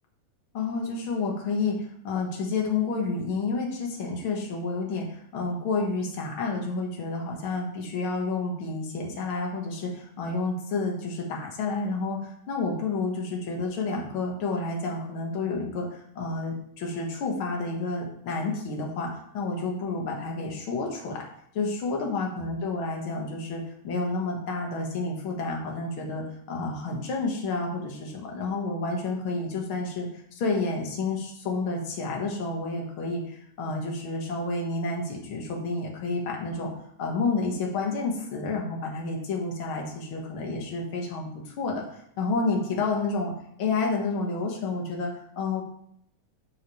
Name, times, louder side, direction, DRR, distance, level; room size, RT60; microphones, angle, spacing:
voice 1, 0.5-21.2 21.5-36.7 37.0-43.3 43.6-45.6, left 3 dB, 50° left, 0 dB, 1.9 m, -30 dB
12.5 x 4.7 x 3.2 m, 0.68 s
omnidirectional pair, 3.7 m